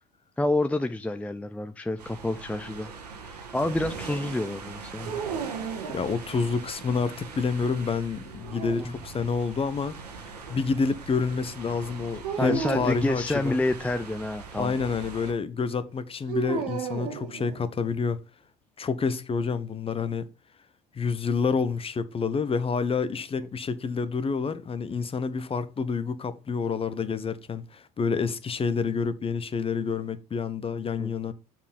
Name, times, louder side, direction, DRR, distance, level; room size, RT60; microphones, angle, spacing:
voice 1, 0.4-2.9 3.3-5.2 8.8-9.0 10.2-10.3 12.4-14.8 23.4-23.5 31.0-31.3, left 2 dB, 5° left, 0.6 m, -29 dB
sound 1, 2.0-15.3, right 4 dB, 90° right, 1.5 m, -42 dB
sound 2, 5.0-6.6 8.3-9.4 12.2-13.0 16.3-17.9, right 6 dB, 75° right, 1.8 m, -34 dB
voice 2, 5.9-9.9 10.5-13.6 14.6-18.2 18.8-20.3 20.9-31.3, left 5 dB, 30° left, 1.0 m, -28 dB
7.1 x 4.5 x 5.2 m
hypercardioid pair, 70°, 20 cm